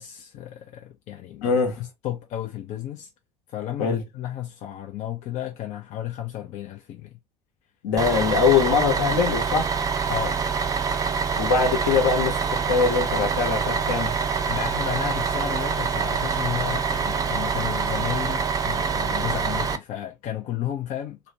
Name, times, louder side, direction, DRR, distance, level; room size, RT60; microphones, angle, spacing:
voice 1, 0.0-3.1 3.5-7.2 10.1-10.4 14.5-21.2, left 11 dB, 45° left, 0.4 m, -33 dB
voice 2, 1.4-1.8 3.8-4.0 7.8-9.8 11.4-14.1, left 5 dB, 65° left, 0.8 m, -22 dB
Bus, 8.0-19.8, right 5 dB, 20° right, 0.3 m, -25 dB
2.4 x 2.0 x 2.6 m
figure-of-eight pair, 60°, 17 cm